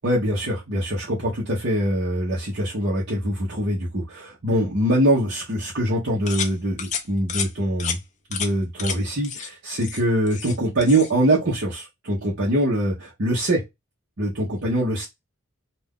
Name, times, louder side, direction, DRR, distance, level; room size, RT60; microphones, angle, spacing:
voice 1, 0.0-8.0 8.3-13.6 14.2-15.1, right 1 dB, 50° right, -5 dB, 0.8 m, -23 dB
sound 1, 6.3-6.5 6.8-7.0 7.3-7.5 7.8-8.0 8.3-8.5 8.8-9.0 9.2-9.5 9.8-10.6 10.8-11.1, left 7 dB, 35° left, 0.5 m, -30 dB
2.5 x 2.3 x 3.5 m, 0.20 s
head